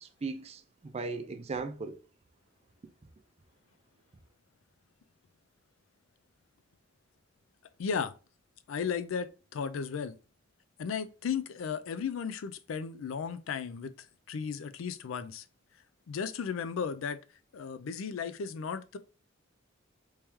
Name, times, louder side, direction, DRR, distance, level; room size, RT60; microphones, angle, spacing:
voice 1, 0.0-2.0, right 4 dB, 30° right, 0.4 m, -38 dB
voice 2, 7.8-8.1 8.7-10.1 10.8-13.9 14.3-15.4 16.1-17.2 17.5-19.0, left 6 dB, 85° left, 0.4 m, -35 dB
3.0 x 3.0 x 3.5 m
head